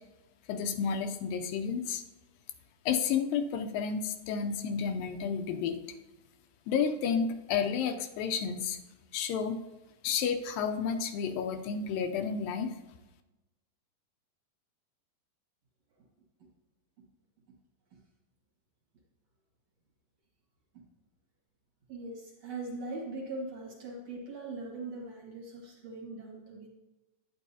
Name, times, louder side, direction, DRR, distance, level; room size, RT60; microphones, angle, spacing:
voice 1, 0.5-2.0 2.9-5.8 6.7-8.8 9.1-9.7 10.0-12.7, left 6 dB, 80° left, 6 dB, 2.3 m, -31 dB
voice 2, 21.9-26.7, right 2 dB, 55° right, -2 dB, 2.4 m, -41 dB
10.0 x 9.7 x 2.7 m, 1.0 s
omnidirectional pair, 4.1 m